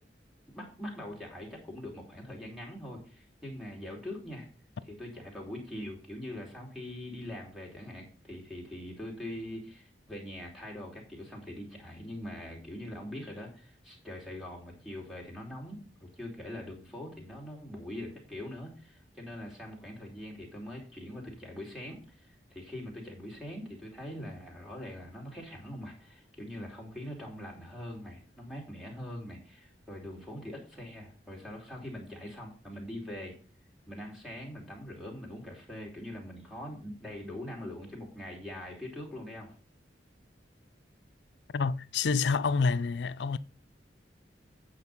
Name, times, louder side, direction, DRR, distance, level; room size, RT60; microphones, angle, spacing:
voice 1, 0.5-4.5 4.9-33.3 33.9-39.5, left 1 dB, ahead, 2.7 m, -43 dB
voice 2, 41.5-43.4, left 4 dB, 70° left, 0.4 m, -28 dB
8.6 x 5.0 x 5.3 m
head